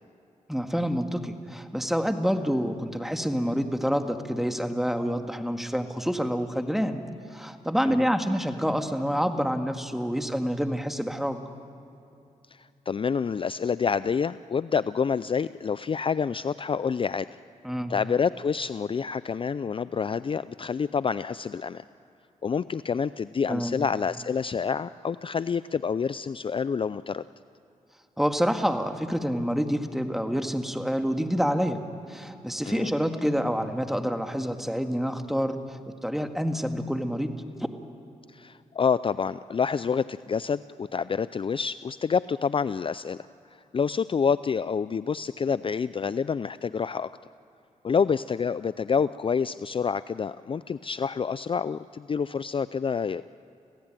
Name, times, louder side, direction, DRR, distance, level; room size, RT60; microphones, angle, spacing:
voice 1, 0.5-7.0 7.3-11.4 17.6-17.9 23.5-23.7 28.2-31.8 32.1-37.3, equal, ahead, 6 dB, 1.9 m, -27 dB
voice 2, 12.6-17.3 17.9-21.8 22.4-27.2 32.7-32.9 38.3-43.2 43.7-47.1 47.8-53.2, left 6 dB, 40° left, 15 dB, 0.4 m, -28 dB
26.0 x 16.5 x 9.0 m, 2.8 s
cardioid pair, 60°, 13 cm